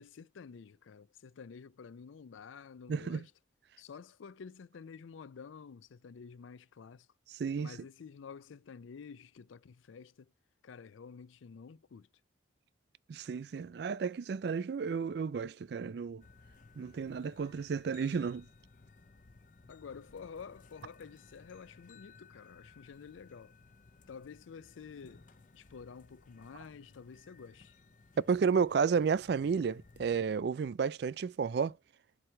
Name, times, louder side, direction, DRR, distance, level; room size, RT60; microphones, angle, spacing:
voice 1, 0.0-3.3 3.8-7.1 7.6-10.3 10.6-12.1 19.7-23.6 24.1-25.2 25.5-27.7, left 6 dB, 85° left, 0.4 m, -50 dB
voice 2, 2.9-3.2 7.3-7.7 13.1-16.2 16.8-18.5 28.3-31.8, right 6 dB, 55° right, 0.3 m, -32 dB
sound 1, 16.2-30.2, left 4 dB, 40° left, 0.6 m, -59 dB
7.7 x 2.9 x 5.7 m
head